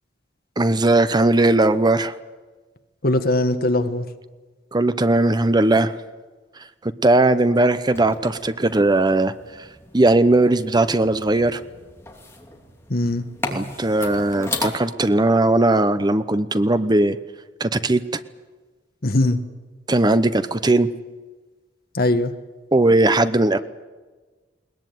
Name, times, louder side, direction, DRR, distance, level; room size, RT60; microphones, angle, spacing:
voice 1, 0.6-2.1 4.7-5.9 6.8-9.3 9.9-11.6 13.5-17.2 17.6-18.0 19.9-20.9 22.7-23.6, right 2 dB, 25° right, 13 dB, 0.8 m, -18 dB
voice 2, 3.0-4.1 12.9-13.3 19.0-19.4 21.9-22.3, left 1 dB, 55° left, 9 dB, 1.5 m, -20 dB
sound 1, 7.9-14.7, left 2 dB, 15° left, 2.7 m, -35 dB
21.5 x 20.0 x 9.4 m, 1.3 s
head